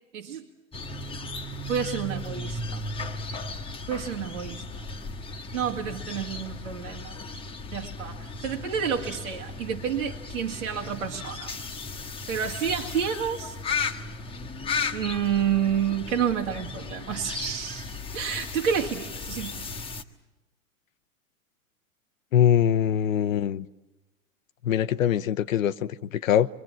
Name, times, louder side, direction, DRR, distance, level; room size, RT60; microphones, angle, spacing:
voice 1, 0.1-0.5 1.7-2.8 3.9-4.6 5.5-7.2 7.7-11.5 12.3-13.6 14.9-19.7, right 8 dB, 75° right, -1 dB, 2.1 m, -29 dB
sound 1, 0.7-20.0, left 3 dB, 15° left, 1.4 m, -36 dB
voice 2, 22.3-23.7 24.6-26.5, left 10 dB, 70° left, 14 dB, 0.8 m, -23 dB
25.5 x 23.5 x 7.3 m, 1.1 s
hypercardioid pair, 105°, 41 cm